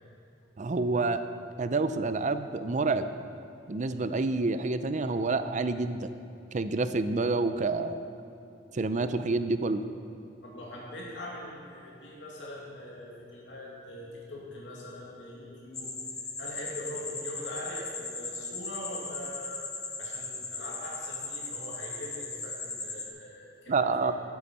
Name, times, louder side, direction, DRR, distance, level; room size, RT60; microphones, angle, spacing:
voice 1, 0.6-1.2 1.6-3.1 3.7-6.1 6.5-8.1 8.7-9.8 23.7-24.1, right 3 dB, 40° right, 11 dB, 0.5 m, -28 dB
voice 2, 10.4-16.0 16.4-19.7 20.0-24.1, left 1 dB, 80° left, -4 dB, 2.2 m, -42 dB
sound 1, 15.7-23.1, left 3 dB, 20° left, 1.0 m, -38 dB
13.5 x 9.6 x 4.3 m, 2.8 s
head